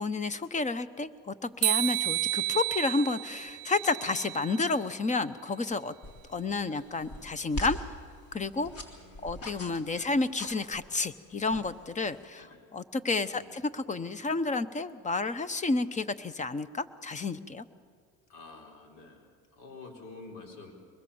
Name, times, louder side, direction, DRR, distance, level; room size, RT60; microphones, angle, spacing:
voice 1, 0.0-5.9 6.3-7.8 8.3-8.7 9.2-12.4 12.7-17.6, left 3 dB, 20° left, 15 dB, 0.9 m, -30 dB
sound 1, 1.6-4.7, right 22 dB, 75° right, 0.6 m, -31 dB
sound 2, 6.0-12.2, left 1 dB, 45° left, 3.4 m, -43 dB
voice 2, 8.9-10.2 12.4-12.6 13.2-13.7 18.3-20.7, left 3 dB, 65° left, 2 dB, 4.1 m, -50 dB
23.5 x 21.5 x 7.1 m, 2.1 s
cardioid pair, 120°, 34 cm